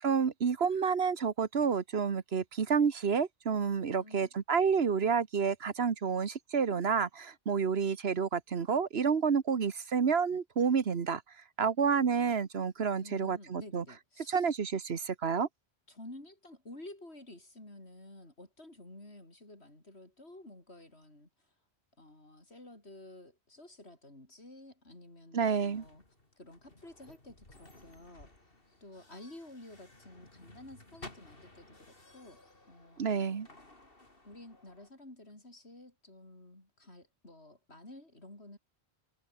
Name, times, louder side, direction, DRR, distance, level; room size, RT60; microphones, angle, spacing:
voice 1, 0.0-11.2 11.6-13.8 14.3-15.5 25.3-25.8 33.0-33.5, right 6 dB, 70° right, 1.5 m, -29 dB
voice 2, 4.0-4.3 12.9-14.5 15.9-21.3 22.0-26.0 26.4-28.3 28.8-33.4 34.2-38.6, left 1 dB, 75° left, 6.6 m, -52 dB
sound 1, 25.7-34.9, left 2 dB, 60° left, 4.5 m, -56 dB
omnidirectional pair, 1.1 m